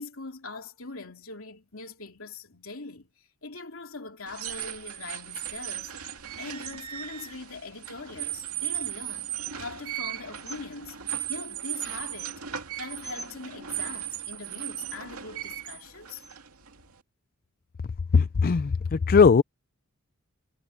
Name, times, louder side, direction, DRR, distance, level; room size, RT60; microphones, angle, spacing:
voice 1, 0.0-11.0 11.3-12.4 12.8-16.2, left 3 dB, 65° left, 3.2 m, -42 dB
sound 1, 4.3-17.0, right 11 dB, 90° right, 2.4 m, -37 dB
voice 2, 18.1-19.4, left 5 dB, 40° left, 0.4 m, -19 dB
head